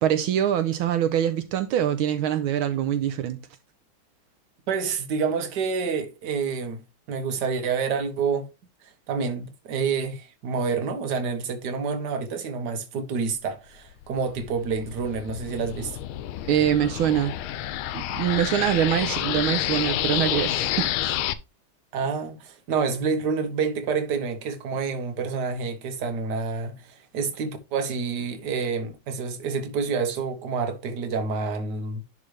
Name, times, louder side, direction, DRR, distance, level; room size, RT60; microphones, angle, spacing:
voice 1, 0.0-3.4 16.5-17.3 17.9-21.2, right 10 dB, 85° right, 1.5 m, -24 dB
voice 2, 4.7-6.8 7.1-8.5 8.8-16.0 21.9-32.0, right 5 dB, 60° right, 1.6 m, -28 dB
sound 1, 14.0-21.3, left 12 dB, 85° left, 1.4 m, -29 dB
11.0 x 3.9 x 3.2 m
omnidirectional pair, 2.3 m